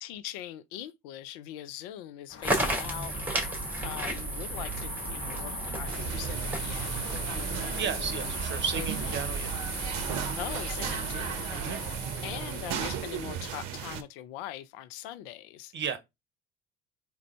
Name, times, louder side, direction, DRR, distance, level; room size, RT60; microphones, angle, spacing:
voice 1, 0.0-3.1 3.8-8.3 8.8-9.2 10.4-11.6 12.2-15.7, left 12 dB, 65° left, 0.5 m, -42 dB
sound 1, 2.3-12.0, left 6 dB, 45° left, 0.9 m, -46 dB
sound 2, 2.4-13.6, right 1 dB, 5° right, 1.9 m, -34 dB
sound 3, 5.9-14.0, right 8 dB, 65° right, 0.7 m, -36 dB
voice 2, 7.8-9.5 11.5-11.9 15.7-16.0, right 7 dB, 35° right, 1.0 m, -34 dB
3.7 x 3.2 x 3.2 m
figure-of-eight pair, 55°, 31 cm